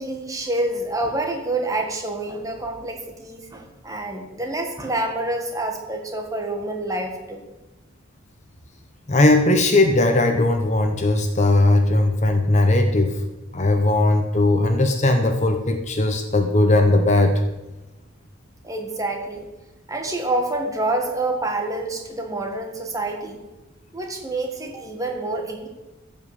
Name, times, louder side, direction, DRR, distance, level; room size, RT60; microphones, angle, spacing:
voice 1, 0.0-7.4 18.6-19.5 19.9-23.4 23.9-25.7, right 2 dB, 15° right, 2 dB, 1.6 m, -27 dB
voice 2, 9.1-13.2 13.5-17.4, left 2 dB, 35° left, 6 dB, 0.9 m, -18 dB
14.5 x 5.5 x 8.2 m, 1.1 s
head